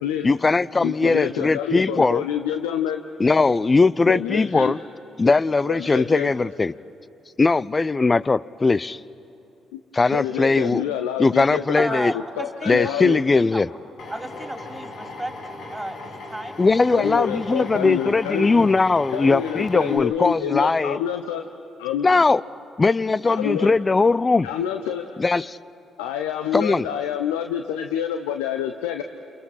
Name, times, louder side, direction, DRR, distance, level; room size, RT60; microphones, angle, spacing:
voice 1, 0.2-2.2 3.2-4.8 5.2-6.7 7.4-9.0 9.9-10.8 11.2-12.1 12.7-13.7 16.6-21.0 22.0-22.4 22.8-24.5 25.2-25.6 26.5-26.9, left 3 dB, 30° left, 20 dB, 0.6 m, -19 dB
voice 2, 0.8-3.0 4.1-4.8 5.7-6.3 9.7-9.8 10.1-13.2 16.9-18.5 19.1-21.5 21.8-22.1 23.2-23.7 24.4-25.2 26.0-29.0, left 9 dB, 75° left, 7 dB, 0.8 m, -27 dB
voice 3, 11.8-12.9 13.5-13.6 14.1-15.3 15.7-16.6, right 1 dB, 10° right, 4 dB, 3.1 m, -32 dB
Drill, 14.0-20.0, left 2 dB, 60° left, 3.3 m, -38 dB
29.5 x 29.0 x 5.8 m, 2.8 s
figure-of-eight pair, 45°, 0 cm